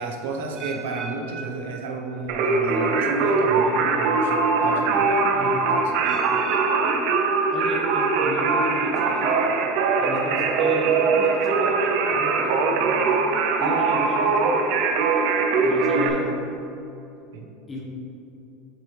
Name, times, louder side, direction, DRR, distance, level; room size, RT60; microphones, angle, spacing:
voice 1, 0.0-4.3 4.6-5.6 17.3-17.5, right 3 dB, 85° right, 1 dB, 1.0 m, -32 dB
sound 1, 0.6-2.6 2.8-3.3 3.9-4.0 6.0-8.0 8.3-8.8 9.4-9.5, right 5 dB, 30° right, 1.3 m, -39 dB
Singing, 2.3-16.1, right 4 dB, 50° right, 0.8 m, -21 dB
voice 2, 5.3-5.7 7.5-9.4 10.0-12.9 13.6-14.8 15.6-16.4 17.7-17.8, equal, 15° left, -3 dB, 1.2 m, -34 dB
7.6 x 6.3 x 3.4 m, 2.8 s
supercardioid pair, 165°, 0 cm